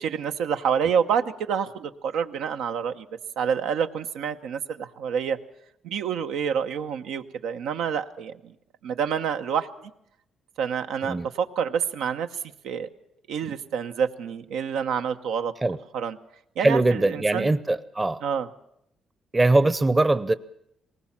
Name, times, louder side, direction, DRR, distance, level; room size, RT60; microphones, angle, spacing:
voice 1, 0.0-3.0 3.4-5.4 5.8-8.3 8.8-9.7 10.6-12.3 12.6-12.9 13.3-15.5 15.9-16.2 16.6-17.5 18.2-18.5, right 7 dB, 85° right, 0.9 m, -27 dB
voice 2, 16.6-18.2 19.3-20.3, right 2 dB, 20° right, 0.7 m, -21 dB
19.0 x 19.0 x 7.3 m
cardioid pair, 90°, 0 cm